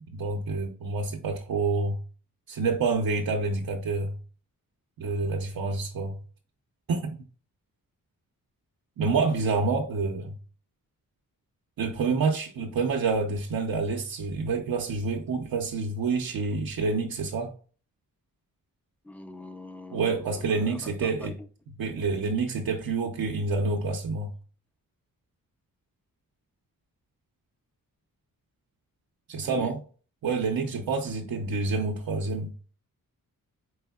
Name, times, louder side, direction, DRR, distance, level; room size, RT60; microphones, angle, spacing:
voice 1, 0.1-2.0 2.5-4.2 5.0-6.2 6.9-7.2 9.0-10.4 11.8-17.5 19.9-21.4 21.8-24.3 29.3-29.8 30.2-32.5, right 4 dB, 80° right, 0.7 m, -28 dB
voice 2, 19.0-21.3 29.4-29.7, left 2 dB, 5° left, 0.3 m, -43 dB
4.6 x 3.5 x 2.3 m
wide cardioid pair, 130°, 35 cm